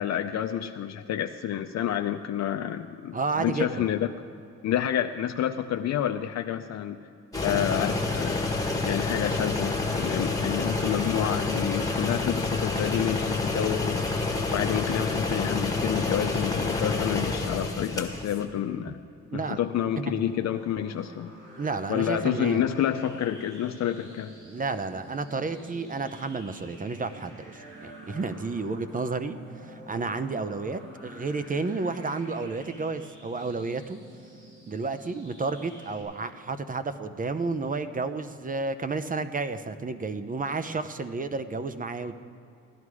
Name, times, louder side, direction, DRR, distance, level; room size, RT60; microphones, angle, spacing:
voice 1, 0.0-4.1 4.6-7.0 7.4-8.4 8.8-14.1 14.5-19.0 19.3-21.3 21.9-24.3, left 10 dB, 60° left, 6 dB, 0.6 m, -29 dB
voice 2, 3.1-3.9 18.9-19.0 19.3-19.6 20.0-20.2 21.6-22.7 24.4-29.4 29.6-34.0 34.7-42.2, right 3 dB, 25° right, 11 dB, 0.7 m, -31 dB
sound 1, 7.3-18.4, left 3 dB, 10° left, 1.8 m, -28 dB
sound 2, 20.0-36.0, right 1 dB, 90° right, 4.3 m, -48 dB
17.0 x 11.0 x 4.8 m, 2.6 s
cardioid pair, 90°, 30 cm